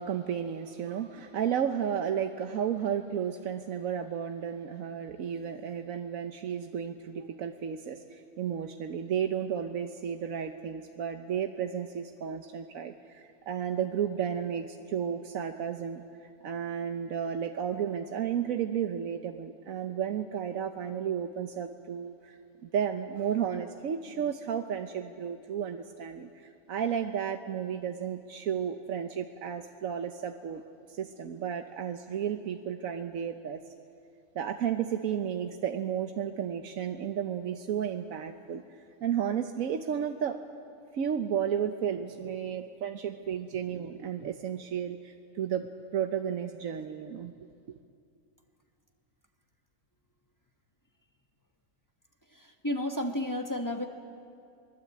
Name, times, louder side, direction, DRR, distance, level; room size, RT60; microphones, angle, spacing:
voice 1, 0.0-16.0 16.4-30.6 30.9-33.6 34.3-38.6 39.0-40.4 40.9-45.7 45.9-47.3, right 8 dB, 85° right, 6 dB, 1.3 m, -33 dB
voice 2, 52.3-53.9, left 1 dB, 15° left, 3 dB, 1.4 m, -32 dB
23.5 x 21.0 x 8.5 m, 2.4 s
omnidirectional pair, 1.4 m